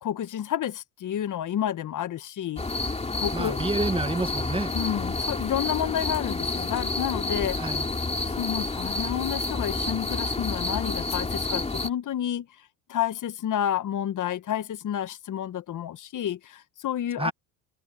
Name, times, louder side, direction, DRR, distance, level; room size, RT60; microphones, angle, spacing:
voice 1, 0.0-2.6 3.1-3.6 4.7-7.7 8.3-12.5 12.9-17.3, left 10 dB, 45° left, 1.4 m, -30 dB
sound 1, 2.6-11.9, left 3 dB, 15° left, 3.0 m, -29 dB
voice 2, 3.3-4.7 7.6-7.9 17.2-17.3, right 3 dB, 10° right, 1.8 m, -29 dB
supercardioid pair, 95°, 45 cm